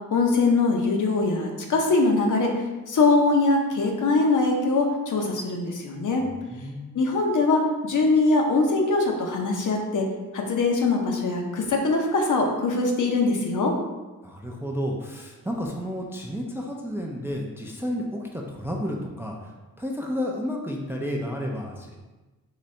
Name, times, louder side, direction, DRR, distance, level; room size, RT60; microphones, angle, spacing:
voice 1, 0.1-6.3 6.9-10.1 10.3-13.7, left 3 dB, 60° left, 2 dB, 0.7 m, -22 dB
voice 2, 6.2-6.9 14.2-22.0, equal, 5° right, 0 dB, 0.3 m, -31 dB
3.9 x 2.6 x 3.2 m, 1.2 s
wide cardioid pair, 95°, 35 cm